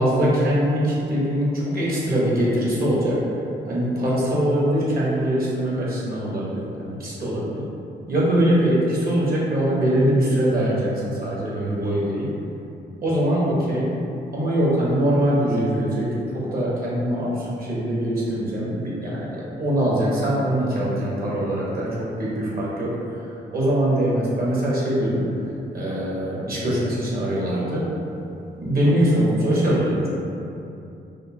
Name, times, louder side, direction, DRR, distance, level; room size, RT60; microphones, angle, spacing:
voice 1, 0.0-3.2 3.7-7.6 8.1-12.3 13.0-13.9 14.3-23.3 23.5-25.2 25.7-27.8 28.5-30.1, equal, 50° right, -6 dB, 1.2 m, -22 dB
5.0 x 2.1 x 2.8 m, 2.7 s
cardioid pair, 70°, 19 cm